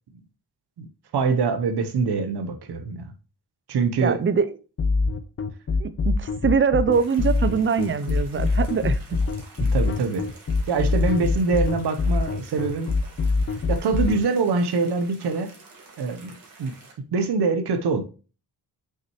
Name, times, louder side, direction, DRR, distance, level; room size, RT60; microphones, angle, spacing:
voice 1, 1.1-3.1 3.7-4.2 9.6-10.3 10.7-12.9 13.7-15.5 16.0-16.3 16.6-18.0, right 4 dB, 70° right, 1.0 m, -24 dB
voice 2, 4.0-4.5 5.8-9.0, right 6 dB, 30° right, 0.5 m, -23 dB
sound 1, 4.8-14.2, left 3 dB, 35° left, 0.6 m, -23 dB
sound 2, 6.9-16.9, right 3 dB, 55° right, 2.1 m, -49 dB
6.0 x 5.8 x 3.0 m
cardioid pair, 115°, 40 cm